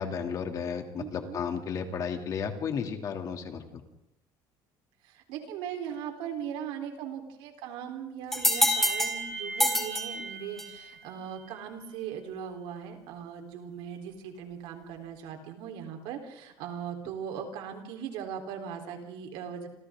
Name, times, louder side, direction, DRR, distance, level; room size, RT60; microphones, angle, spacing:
voice 1, 0.0-3.8, left 6 dB, 40° left, 4 dB, 2.9 m, -33 dB
voice 2, 1.0-1.4 5.0-19.7, right 8 dB, 80° right, 4 dB, 4.1 m, -39 dB
sound 1, 8.3-10.9, equal, 5° left, 3.8 m, -27 dB
29.0 x 27.0 x 3.9 m, 0.82 s
cardioid pair, 130°, 9 cm